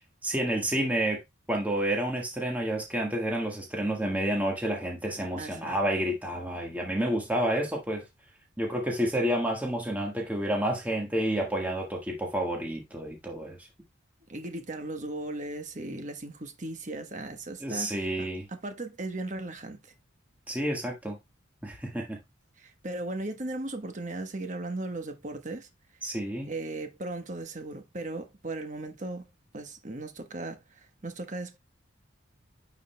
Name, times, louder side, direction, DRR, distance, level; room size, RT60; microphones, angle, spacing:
voice 1, 0.2-1.2 1.5-8.0 8.6-13.7 17.6-18.5 20.5-21.2 21.6-22.2 26.0-26.5, right 1 dB, 10° right, 1.5 m, -29 dB
voice 2, 5.4-5.8 14.3-19.8 22.6-25.7 26.5-29.2 29.5-31.6, right 2 dB, 35° right, 1.1 m, -37 dB
9.4 x 4.9 x 2.2 m
head